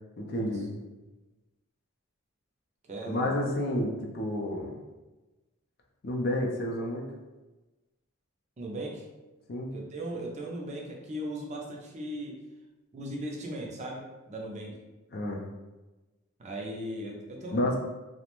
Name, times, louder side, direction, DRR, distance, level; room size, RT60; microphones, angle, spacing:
voice 1, 0.2-0.7 3.1-4.7 6.0-7.0 9.5-9.7 15.1-15.4 17.5-17.8, left 1 dB, 50° left, 0 dB, 0.4 m, -30 dB
voice 2, 2.9-3.3 8.6-9.1 9.7-12.4 12.9-14.8 16.4-17.7, right 1 dB, 35° right, -1 dB, 0.4 m, -38 dB
2.4 x 2.1 x 2.9 m, 1.1 s
head